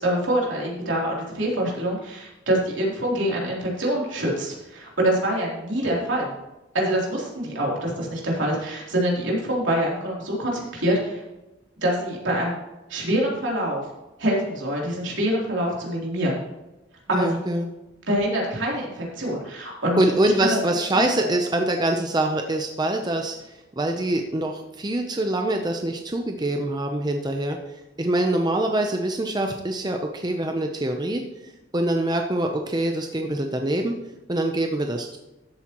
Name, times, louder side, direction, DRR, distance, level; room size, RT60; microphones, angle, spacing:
voice 1, 0.0-6.3 6.7-11.2 11.8-12.6 12.9-13.8 14.2-16.4 17.1-17.4 18.1-20.0 20.4-20.6 21.1-21.2, right 1 dB, 70° right, -3 dB, 3.3 m, -25 dB
voice 2, 17.1-17.7 20.0-31.2 31.7-34.0 34.3-35.2, right 1 dB, 20° right, 3 dB, 0.7 m, -24 dB
13.5 x 8.3 x 3.0 m, 1.0 s
head